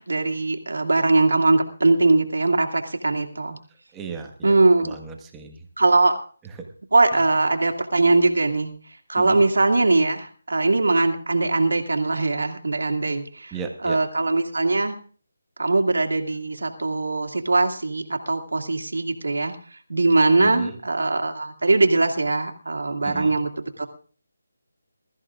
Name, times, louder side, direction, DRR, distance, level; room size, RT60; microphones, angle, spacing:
voice 1, 0.0-3.6 4.4-5.0 5.8-6.1 6.9-8.7 9.1-13.5 13.8-15.0 15.6-19.6 19.9-23.5 23.8-23.9, right 2 dB, 85° right, 3 dB, 2.3 m, -21 dB
voice 2, 3.9-5.7 6.4-6.7 7.1-7.2 9.2-9.4 13.5-14.0 20.4-20.8 23.0-23.4, right 6 dB, 10° right, 2 dB, 1.5 m, -36 dB
22.0 x 14.0 x 2.5 m, 0.42 s
figure-of-eight pair, 165°, 0 cm